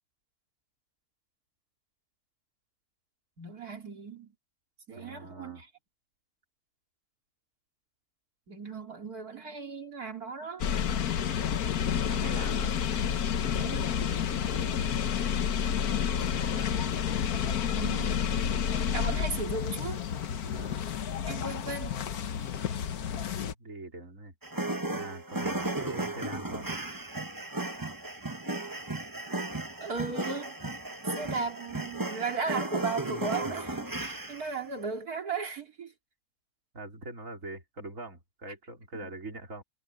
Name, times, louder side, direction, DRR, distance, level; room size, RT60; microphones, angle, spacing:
voice 1, 3.4-4.3 4.9-5.7 8.5-10.6 13.5-13.9 17.7-18.2 18.9-20.1 21.3-22.0 29.8-30.5 31.2-35.9 38.9-39.1, right 4 dB, 85° right, 3.6 m, -36 dB
voice 2, 4.9-5.6 12.1-12.7 16.2-16.9 20.4-20.8 23.4-24.3 24.9-26.7 36.7-39.6, right 2 dB, 60° right, 4.7 m, -43 dB
sound 1, 10.6-23.5, left 8 dB, 90° left, 1.5 m, -30 dB
sound 2, 24.4-34.6, right 2 dB, 15° right, 1.3 m, -35 dB
omnidirectional pair, 1.6 m